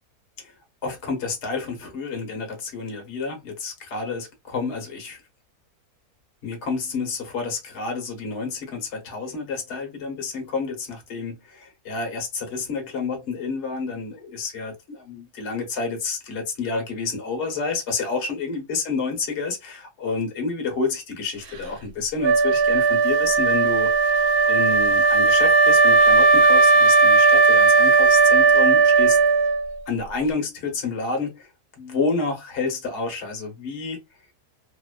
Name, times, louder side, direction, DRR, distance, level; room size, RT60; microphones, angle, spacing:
voice 1, 0.8-5.2 6.4-24.1 24.5-29.2 29.9-31.5 31.8-34.0, left 4 dB, 50° left, 1.1 m, -29 dB
Wind instrument woodwind instrument, 22.2-29.8, right 4 dB, 90° right, 1.1 m, -16 dB
2.8 x 2.1 x 2.2 m
omnidirectional pair, 1.6 m